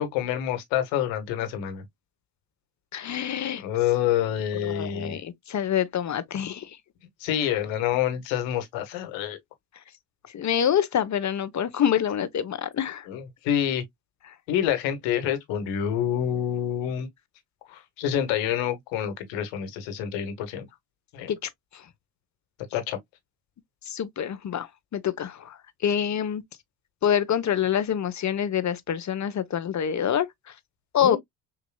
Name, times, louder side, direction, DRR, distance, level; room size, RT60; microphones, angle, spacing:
voice 1, 0.0-1.8 3.6-5.2 7.2-9.4 13.1-13.8 14.5-17.1 17.7-20.7 21.1-21.3 22.7-23.0 31.0-31.2, left 10 dB, 70° left, 1.6 m, -27 dB
voice 2, 2.9-3.6 4.5-6.7 7.5-7.6 10.3-13.1 21.3-21.4 21.7-21.8 23.9-25.6 25.8-26.4 27.0-30.3 30.9-31.2, left 9 dB, 35° left, 1.0 m, -26 dB
6.1 x 2.9 x 2.3 m
hypercardioid pair, 65°, 46 cm